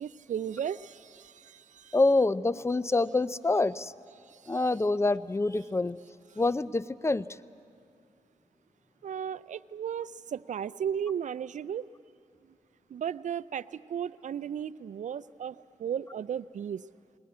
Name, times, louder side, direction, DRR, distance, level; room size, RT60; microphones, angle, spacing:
voice 1, 0.0-2.0 4.3-4.6 9.0-11.9 12.9-16.8, right 8 dB, 65° right, 17 dB, 0.5 m, -35 dB
voice 2, 1.9-3.9 4.5-6.0 6.4-7.3, left 2 dB, 20° left, 17 dB, 0.6 m, -26 dB
20.5 x 20.0 x 8.5 m, 2.4 s
cardioid pair, 50°, 13 cm